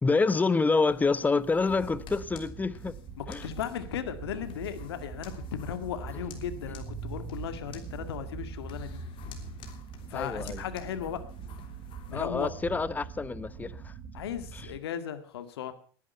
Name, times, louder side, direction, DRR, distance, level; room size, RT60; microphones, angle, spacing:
voice 1, 0.0-3.0 3.3-3.5 10.1-10.6 12.1-13.9 14.5-14.7, left 4 dB, 15° left, 1.0 m, -27 dB
sound 1, 0.9-12.1, left 8 dB, 40° left, 3.3 m, -51 dB
sound 2, 1.7-14.8, right 6 dB, 40° right, 2.7 m, -42 dB
voice 2, 3.2-9.0 10.1-11.2 12.1-12.5 14.1-15.7, left 10 dB, 85° left, 2.1 m, -36 dB
19.5 x 11.0 x 5.7 m
supercardioid pair, 115°, 13 cm